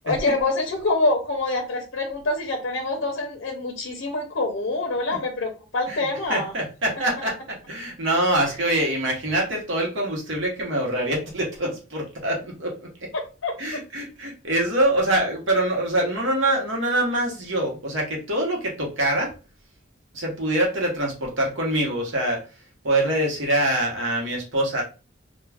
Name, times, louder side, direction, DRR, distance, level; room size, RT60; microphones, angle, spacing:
voice 1, 0.0-6.5 13.1-13.8, left 2 dB, 60° left, 3 dB, 0.5 m, -26 dB
voice 2, 6.3-13.1 13.6-19.3 20.1-22.4 22.8-24.8, right 1 dB, 65° right, -1 dB, 0.8 m, -24 dB
2.3 x 2.1 x 3.3 m, 0.32 s
head